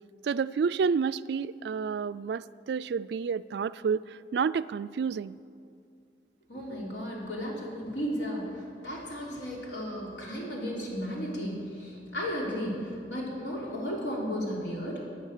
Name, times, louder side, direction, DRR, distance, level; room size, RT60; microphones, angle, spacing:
voice 1, 0.2-5.3, right 6 dB, 70° right, 16 dB, 0.3 m, -30 dB
voice 2, 6.5-15.0, equal, 85° left, -3 dB, 3.4 m, -34 dB
12.0 x 9.1 x 8.2 m, 2.4 s
head